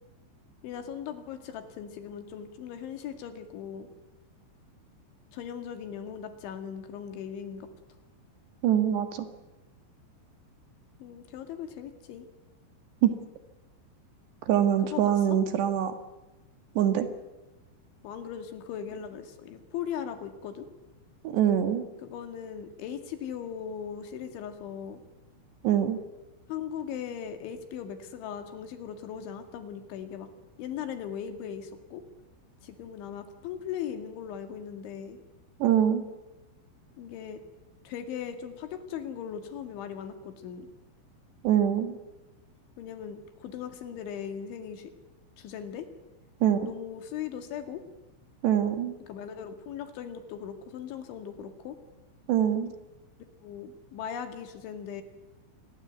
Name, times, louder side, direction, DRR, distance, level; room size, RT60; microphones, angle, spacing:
voice 1, 0.6-3.9 5.3-7.7 11.0-12.3 14.8-15.4 18.0-20.7 22.0-25.0 26.5-30.3 30.6-32.0 32.6-35.2 37.0-37.4 37.9-40.7 42.8-44.9 45.4-45.9 46.6-47.8 49.0-51.8 53.4-55.0, left 8 dB, 75° left, 7 dB, 4.5 m, -39 dB
voice 2, 8.6-9.3 13.0-13.1 14.5-15.9 16.8-17.1 21.3-21.8 25.6-26.0 35.6-36.0 41.4-42.0 46.4-46.7 48.4-48.9 52.3-52.7, right 10 dB, 70° right, 8 dB, 3.6 m, -24 dB
27.5 x 22.0 x 8.2 m, 1.0 s
omnidirectional pair, 5.4 m